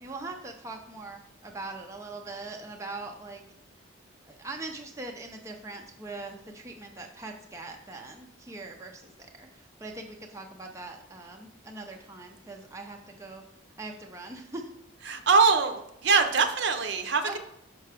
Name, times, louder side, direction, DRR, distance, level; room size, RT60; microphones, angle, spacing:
voice 1, 0.0-3.4 4.3-9.1 9.4-13.4 13.8-14.7 17.2-17.4, right 2 dB, 15° right, 2 dB, 0.4 m, -41 dB
voice 2, 15.1-17.4, right 4 dB, 60° right, 7 dB, 0.6 m, -23 dB
5.8 x 5.5 x 3.4 m, 0.79 s
head